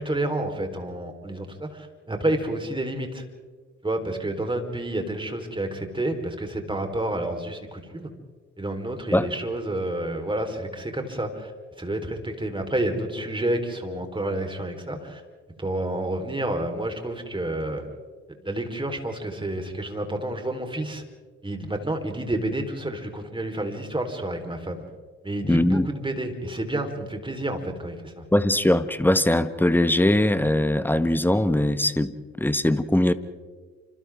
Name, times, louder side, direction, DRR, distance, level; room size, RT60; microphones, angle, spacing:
voice 1, 0.0-3.2 3.8-8.1 8.6-11.5 11.8-15.2 15.6-17.8 18.4-21.0 21.4-24.8 25.2-28.2, right 1 dB, 15° right, 4 dB, 4.2 m, -29 dB
voice 2, 25.4-25.9 28.3-33.1, left 1 dB, 5° left, 13 dB, 1.3 m, -21 dB
29.5 x 27.0 x 3.7 m, 1.5 s
hypercardioid pair, 50°, 35 cm